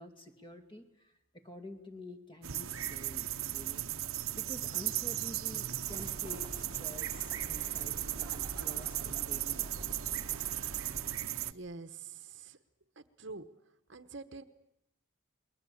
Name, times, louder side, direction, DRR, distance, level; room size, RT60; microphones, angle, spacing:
voice 1, 0.0-3.9 4.3-9.7, left 1 dB, 25° left, 6 dB, 2.4 m, -49 dB
sound 1, 2.4-11.5, right 13 dB, 80° right, 0.9 m, -36 dB
Bird, 5.8-11.2, right 1 dB, 20° right, 1.4 m, -47 dB
voice 2, 11.4-12.6 13.0-13.5 13.9-14.4, right 3 dB, 55° right, 10 dB, 1.1 m, -46 dB
28.0 x 22.0 x 8.6 m, 0.82 s
head